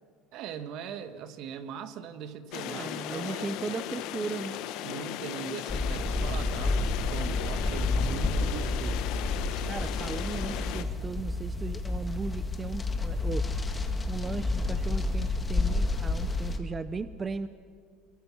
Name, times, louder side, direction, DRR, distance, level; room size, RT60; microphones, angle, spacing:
voice 1, 0.3-3.5 4.8-9.2, right 8 dB, 60° right, 10 dB, 1.6 m, -40 dB
sound 1, 2.5-10.8, left 12 dB, 65° left, 1.3 m, -37 dB
voice 2, 2.6-4.6 9.6-17.5, right 4 dB, 20° right, 12 dB, 0.7 m, -37 dB
sound 2, 5.7-16.6, left 3 dB, 15° left, 1.9 m, -30 dB
28.0 x 23.0 x 6.2 m, 2.2 s
supercardioid pair, 120°, 0 cm